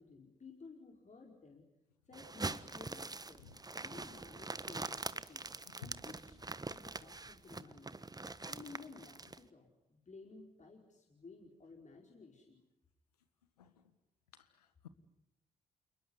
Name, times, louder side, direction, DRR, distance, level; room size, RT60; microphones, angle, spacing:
voice 1, 0.0-1.6 2.1-5.5 5.8-6.4 6.7-8.0 8.4-12.6, left 4 dB, 40° left, 1 dB, 5.0 m, -55 dB
sound 1, 2.1-9.4, right 3 dB, 20° right, 1.4 m, -44 dB
voice 2, 5.6-6.0 13.6-13.8 14.3-14.9, left 7 dB, 90° left, 12 dB, 1.5 m, -54 dB
29.0 x 21.5 x 9.8 m, 0.90 s
hypercardioid pair, 40°, 19 cm